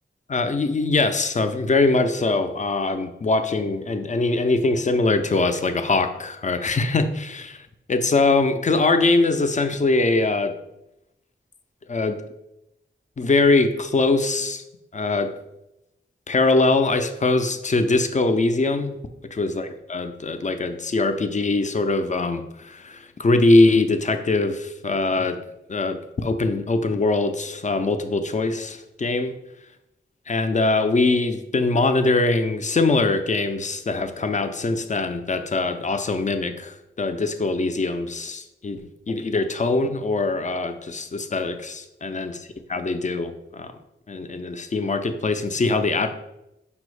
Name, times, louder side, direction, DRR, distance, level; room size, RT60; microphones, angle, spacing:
voice 1, 0.3-10.5 11.9-12.2 13.2-14.6 14.9-15.3 16.3-19.0 19.3-25.4 25.7-29.4 30.3-38.8 39.1-42.3 42.7-43.7 44.1-46.1, left 3 dB, 35° left, 8 dB, 0.5 m, -22 dB
5.2 x 2.1 x 4.7 m, 0.89 s
cardioid pair, 45°, 21 cm